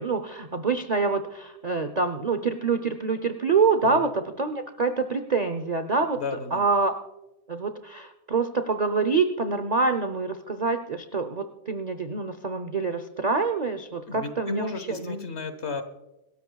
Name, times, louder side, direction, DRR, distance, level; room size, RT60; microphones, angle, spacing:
voice 1, 0.0-6.2 6.5-6.9 7.5-15.1, right 4 dB, 45° right, 8 dB, 0.5 m, -26 dB
voice 2, 6.1-6.7 14.1-15.8, left 3 dB, 45° left, 9 dB, 1.4 m, -34 dB
25.0 x 13.0 x 2.3 m, 0.95 s
omnidirectional pair, 1.8 m